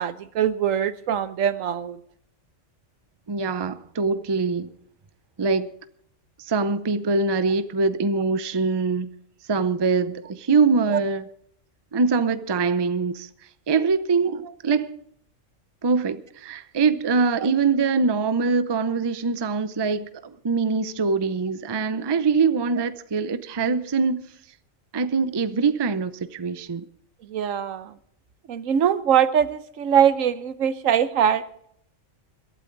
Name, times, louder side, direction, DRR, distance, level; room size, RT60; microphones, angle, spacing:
voice 1, 0.0-2.0 10.9-11.0 17.4-17.5 27.2-28.0 28.5-31.4, right 8 dB, 85° right, 1.2 m, -22 dB
voice 2, 3.3-4.7 5.4-5.7 6.4-9.1 9.5-11.2 11.9-13.3 13.7-14.9 15.8-24.2 24.9-26.8, right 4 dB, 30° right, 0.5 m, -23 dB
22.0 x 12.5 x 3.9 m
omnidirectional pair, 1.3 m